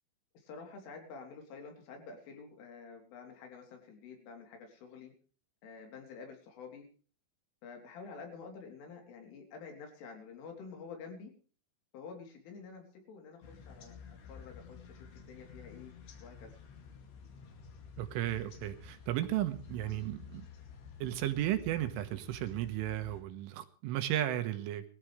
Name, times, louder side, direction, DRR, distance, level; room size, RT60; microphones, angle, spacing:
voice 1, 0.4-5.1 5.6-6.9 7.6-11.3 11.9-15.9 16.2-16.5, left 5 dB, 80° left, 3 dB, 5.9 m, -49 dB
sound 1, 13.4-23.2, left 6 dB, 65° left, 4.4 m, -51 dB
voice 2, 18.0-20.5 21.0-24.8, right 13 dB, 85° right, 9 dB, 3.8 m, -34 dB
21.5 x 14.0 x 3.3 m, 0.40 s
omnidirectional pair, 5.6 m